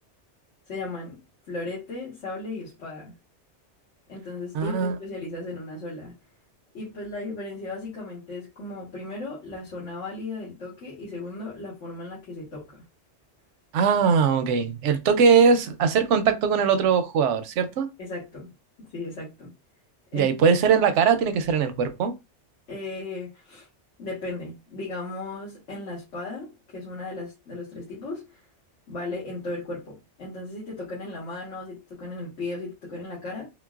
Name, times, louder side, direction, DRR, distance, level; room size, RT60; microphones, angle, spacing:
voice 1, 0.7-1.2 1.5-3.1 4.1-6.1 6.7-12.8 18.0-18.5 18.8-19.5 20.1-20.6 22.7-23.7 24.0-28.4 28.9-33.5, left 2 dB, 80° left, 1.5 m, -36 dB
voice 2, 4.5-4.9 13.7-17.9 20.1-22.1, right 6 dB, 85° right, 0.9 m, -21 dB
3.8 x 2.1 x 2.3 m
omnidirectional pair, 1.2 m